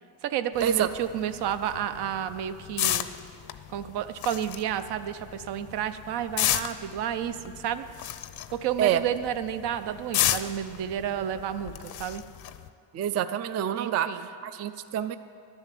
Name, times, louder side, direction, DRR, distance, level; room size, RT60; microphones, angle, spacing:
voice 1, 0.2-3.1 3.7-7.9 8.5-11.7 12.0-12.2 13.7-14.3, right 10 dB, 70° right, 10 dB, 0.7 m, -31 dB
sound 1, 0.5-12.7, left 12 dB, 65° left, 0.6 m, -34 dB
voice 2, 12.9-14.1 14.4-15.2, right 10 dB, 40° right, 11 dB, 0.4 m, -26 dB
11.5 x 7.2 x 9.0 m, 2.5 s
cardioid pair, 120°, 41 cm